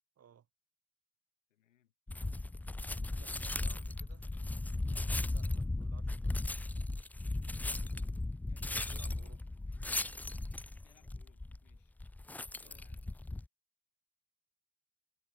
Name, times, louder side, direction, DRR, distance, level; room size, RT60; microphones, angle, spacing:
voice 1, 0.2-0.5 3.2-4.3 5.3-6.9 8.7-9.4 12.5-12.8, right 8 dB, 40° right, 2.2 m, -61 dB
voice 2, 1.5-1.9 8.5-9.2 10.8-11.9 12.6-13.0, left 11 dB, 90° left, 5.7 m, -69 dB
sound 1, 2.1-13.5, left 2 dB, 5° left, 0.3 m, -37 dB
hypercardioid pair, 60°, 37 cm